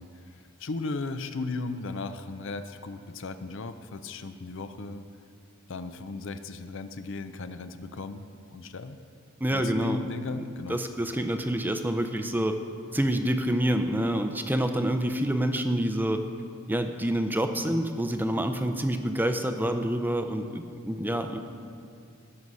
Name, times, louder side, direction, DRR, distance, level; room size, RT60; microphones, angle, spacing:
voice 1, 0.0-5.0 5.7-8.3 8.5-9.0 9.5-10.8, left 3 dB, 60° left, 10 dB, 0.6 m, -36 dB
voice 2, 9.4-10.0 10.7-12.6 12.9-16.2 16.7-21.4, right 1 dB, 10° right, 7 dB, 0.5 m, -27 dB
17.5 x 6.2 x 5.4 m, 2.3 s
head